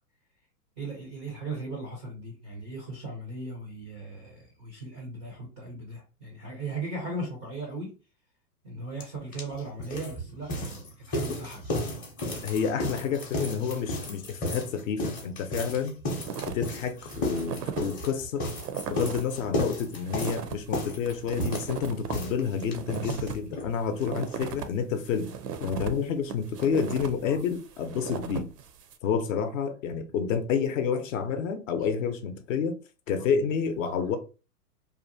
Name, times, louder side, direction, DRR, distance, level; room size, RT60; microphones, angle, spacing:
voice 1, 0.8-7.9 8.6-11.9 27.3-27.4 33.8-33.9, right 2 dB, 15° right, 0.3 m, -38 dB
sound 1, 9.0-9.1 9.3-23.7 24.0-24.1 24.3-24.4 24.7-24.8, left 1 dB, 20° left, 0.6 m, -33 dB
voice 2, 12.4-16.0 16.5-18.5 18.9-25.3 25.6-28.5 29.0-32.8 33.1-34.2, left 6 dB, 55° left, 0.6 m, -29 dB
sound 2, 16.3-16.7 17.1-17.9 18.2-18.3 18.5-19.3 19.7-24.7 25.0-29.0, right 7 dB, 85° right, 0.6 m, -37 dB
2.7 x 2.1 x 2.6 m
hypercardioid pair, 120°, 47 cm